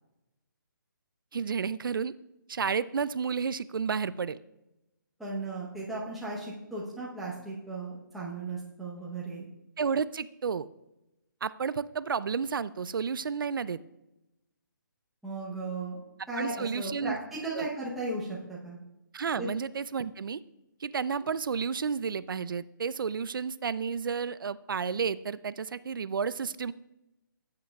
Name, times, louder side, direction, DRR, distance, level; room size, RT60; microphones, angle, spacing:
voice 1, 1.3-2.1 2.5-4.4 9.8-10.7 11.4-13.8 16.4-17.2 17.5-17.7 19.1-20.4 20.8-26.7, right 6 dB, 80° right, 16 dB, 0.4 m, -31 dB
voice 2, 5.2-9.5 15.2-16.0 16.3-18.8 19.4-19.5, right 2 dB, ahead, -7 dB, 0.8 m, -36 dB
15.0 x 8.6 x 2.3 m, 0.95 s
hypercardioid pair, 180°, 11 cm